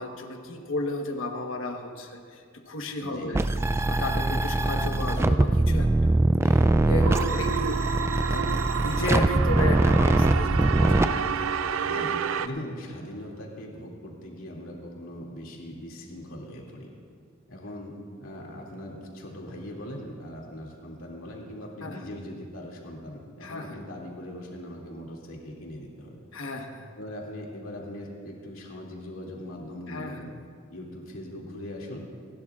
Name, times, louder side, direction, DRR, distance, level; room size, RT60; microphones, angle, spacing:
voice 1, 0.0-3.4 3.9-5.9 6.5-7.8 8.3-11.5 21.8-22.0 23.4-23.8 26.3-26.9 29.9-30.3, left 2 dB, 70° left, 4 dB, 1.3 m, -34 dB
voice 2, 3.0-3.3 7.4-7.7 11.8-12.2 12.4-16.9 17.5-17.9 18.2-26.2 27.0-30.3 30.7-32.0, left 1 dB, 85° left, -2 dB, 2.5 m, -40 dB
sound 1, 3.3-11.1, right 2 dB, 15° right, 0.3 m, -22 dB
sound 2, 7.0-12.5, right 7 dB, 75° right, 0.4 m, -30 dB
28.0 x 11.5 x 2.5 m, 2.2 s
head